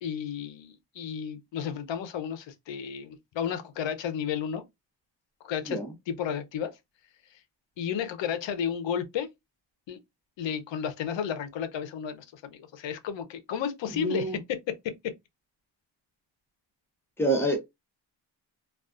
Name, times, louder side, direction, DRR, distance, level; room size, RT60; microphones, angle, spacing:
voice 1, 0.0-4.6 5.4-5.8 6.1-6.7 7.8-9.3 9.9-10.0 10.4-15.1, left 8 dB, 70° left, 0.7 m, -32 dB
voice 2, 13.9-14.4 17.2-17.6, right 2 dB, 5° left, 0.8 m, -26 dB
2.4 x 2.3 x 2.3 m
cardioid pair, 125°, 47 cm